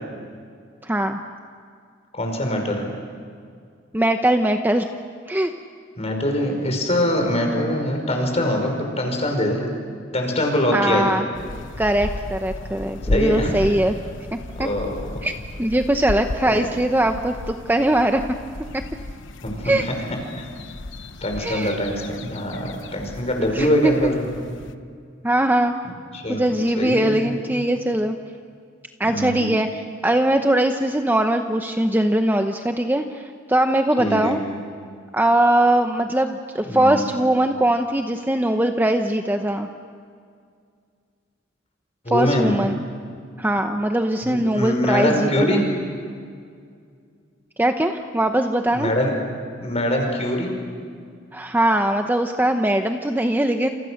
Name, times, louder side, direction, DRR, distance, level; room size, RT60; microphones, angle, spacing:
voice 1, 0.8-1.2 3.9-4.9 5.3-5.5 10.7-11.2 11.8-13.9 14.6-14.7 15.2-15.3 15.6-18.2 19.6-19.9 21.4-21.8 23.5-24.1 25.2-25.7 26.3-28.2 29.0-34.4 35.1-39.7 42.1-42.8 43.4-45.7 47.6-48.9 51.3-53.7, right 1 dB, 10° right, 5 dB, 0.8 m, -21 dB
voice 2, 2.1-2.9 6.0-9.6 10.1-11.2 13.1-13.6 14.6-15.2 16.5-16.7 19.4-19.9 20.3-20.5 21.2-24.4 26.1-26.4 26.8-27.3 29.1-29.5 34.0-34.4 36.6-37.0 42.0-42.5 44.2-45.6 48.7-49.1 49.6-50.5, left 1 dB, 35° left, 3 dB, 5.5 m, -23 dB
sound 1, 11.3-24.7, left 2 dB, 70° left, 1.0 m, -34 dB
28.5 x 28.0 x 6.6 m, 2.2 s
head